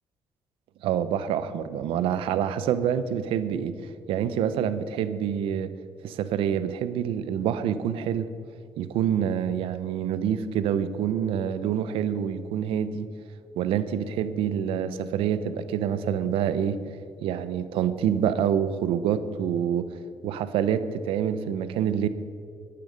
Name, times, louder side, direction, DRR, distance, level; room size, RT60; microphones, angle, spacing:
voice 1, 0.8-3.7 4.1-5.7 6.0-8.3 8.8-13.1 13.6-16.8 17.2-19.9 20.2-22.1, right 9 dB, 85° right, 13 dB, 0.7 m, -26 dB
12.5 x 12.0 x 5.2 m, 2.3 s
cardioid pair, 85°, 9 cm